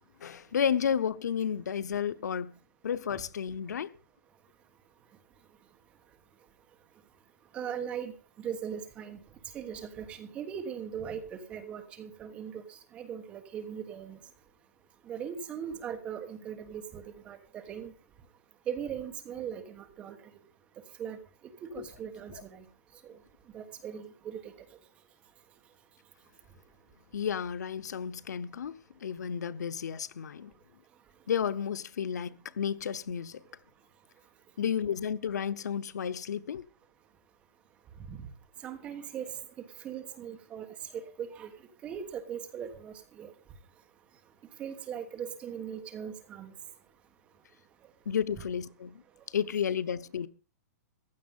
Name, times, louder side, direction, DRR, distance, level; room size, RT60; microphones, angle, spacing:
voice 1, 0.2-2.5 2.8-3.9 21.7-21.9 22.3-22.4 27.1-30.5 31.3-33.4 34.6-36.6 48.1-49.0 49.3-50.3, left 8 dB, 90° left, 0.9 m, -32 dB
voice 2, 7.5-9.2 9.5-14.2 15.1-17.9 18.7-20.2 21.0-21.2 21.7-22.6 23.0-23.1 23.5-24.5 38.1-38.2 38.6-39.3 39.8-40.7 40.9-41.5 41.8-43.3 44.6-46.5, right 8 dB, 15° right, 1.4 m, -39 dB
15.5 x 10.5 x 5.4 m
hypercardioid pair, 180°, 9 cm